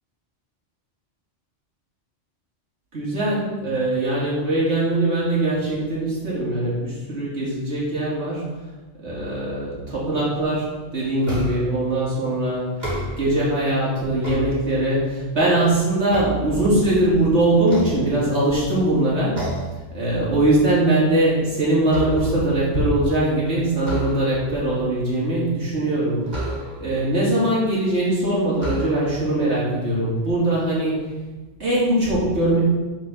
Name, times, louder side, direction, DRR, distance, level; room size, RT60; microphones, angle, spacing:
voice 1, 2.9-8.4 9.0-12.7 13.2-19.4 19.9-26.5 26.8-31.0 31.6-32.6, right 1 dB, 65° right, -7 dB, 3.3 m, -21 dB
sound 1, 11.2-11.8 12.7-13.5 14.0-15.1 15.6-17.1 17.6-18.6 19.3-19.8 20.2-20.5 20.9-22.6 23.8-24.6 26.3-27.0 27.8-27.9 28.5-29.3, right 1 dB, 35° right, 3.1 m, -31 dB
9.0 x 5.2 x 6.3 m, 1.2 s
omnidirectional pair, 1.2 m